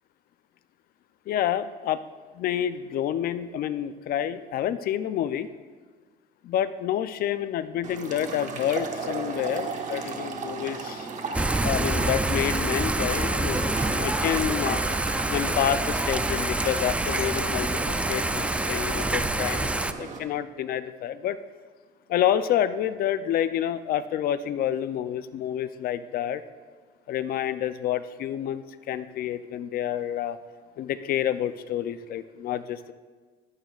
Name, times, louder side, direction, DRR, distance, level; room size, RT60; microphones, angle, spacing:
voice 1, 1.3-2.0 2.3-5.5 6.4-11.1 11.6-14.8 15.3-21.4 22.1-26.4 27.1-30.4 30.8-32.9, left 10 dB, 60° left, 12 dB, 0.5 m, -28 dB
sound 1, 7.8-20.2, right 4 dB, 45° right, 1.3 m, -36 dB
Thunder / Rain, 11.3-19.9, right 2 dB, 5° right, 0.4 m, -26 dB
15.0 x 11.0 x 2.4 m, 1.4 s
cardioid pair, 110°, 17 cm